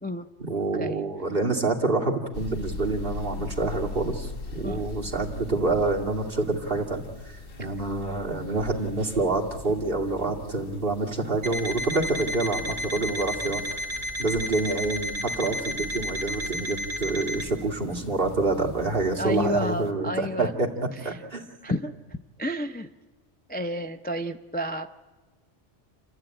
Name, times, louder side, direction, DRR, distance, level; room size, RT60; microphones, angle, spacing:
voice 1, 0.4-7.3 7.6-13.8 14.2-20.7 21.0-21.4, right 3 dB, 50° right, -1 dB, 2.6 m, -27 dB
sound 1, 2.3-19.9, left 3 dB, 55° left, 1.4 m, -41 dB
Alarm, 11.4-17.5, left 1 dB, 75° right, 2.4 m, -32 dB
voice 2, 19.2-20.5 21.0-21.2 21.6-21.9 22.4-22.9 23.5-24.9, left 1 dB, 15° left, 7 dB, 0.3 m, -30 dB
30.0 x 12.5 x 8.9 m, 1.3 s
omnidirectional pair, 1.2 m